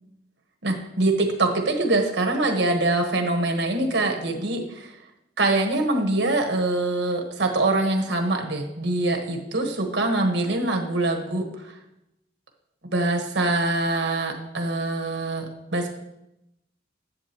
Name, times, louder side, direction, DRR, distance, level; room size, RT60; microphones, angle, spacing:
voice 1, 0.6-4.9 5.4-11.7 12.9-15.5 15.7-15.9, right 2 dB, 75° right, 4 dB, 1.3 m, -24 dB
11.0 x 7.7 x 3.0 m, 0.86 s
head